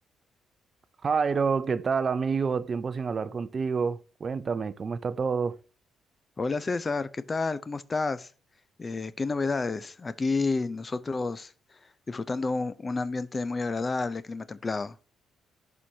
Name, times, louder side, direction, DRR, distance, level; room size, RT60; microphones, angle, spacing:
voice 1, 1.0-5.6, right 5 dB, 40° right, 0.5 m, -28 dB
voice 2, 6.4-8.3 8.8-11.5 12.1-15.0, left 3 dB, 30° left, 0.4 m, -30 dB
11.0 x 4.4 x 2.8 m
cardioid pair, 90°, 0 cm